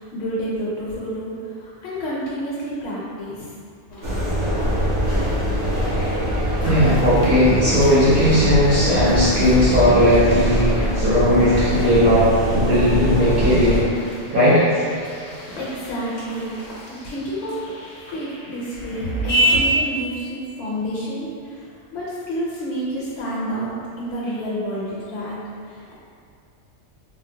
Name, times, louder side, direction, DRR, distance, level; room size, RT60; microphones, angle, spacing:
voice 1, 0.0-3.5 15.0-16.6 17.0-17.6 18.1-23.7 24.0-25.4 25.7-25.9, equal, 70° left, -7 dB, 0.9 m, -29 dB
sound 1, 3.9-19.6, equal, 45° left, 0.6 m, -32 dB
sound 2, 4.0-13.8, equal, 80° right, 1.1 m, -23 dB
voice 2, 6.6-13.8 14.3-14.6, equal, 55° right, -11 dB, 0.9 m, -17 dB
3.5 x 2.0 x 2.6 m, 2.3 s
omnidirectional pair, 1.2 m